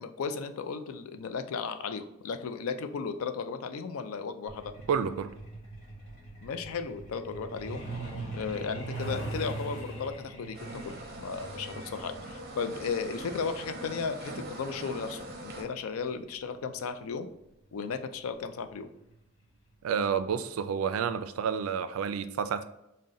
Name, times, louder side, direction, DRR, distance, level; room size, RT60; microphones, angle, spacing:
voice 1, 0.0-4.7 6.4-7.9 8.3-17.3 17.7-18.9, left 5 dB, 80° left, 0.4 m, -35 dB
Truck, 4.5-16.8 18.0-18.2 18.6-18.7 19.1-19.4 19.7-19.8 20.3-20.4, right 2 dB, 55° left, 1.2 m, -41 dB
voice 2, 4.9-5.3 19.8-22.6, right 7 dB, 80° right, 0.3 m, -29 dB
sound 1, 10.5-15.6, right 1 dB, 45° right, 0.7 m, -42 dB
3.9 x 2.1 x 3.6 m
head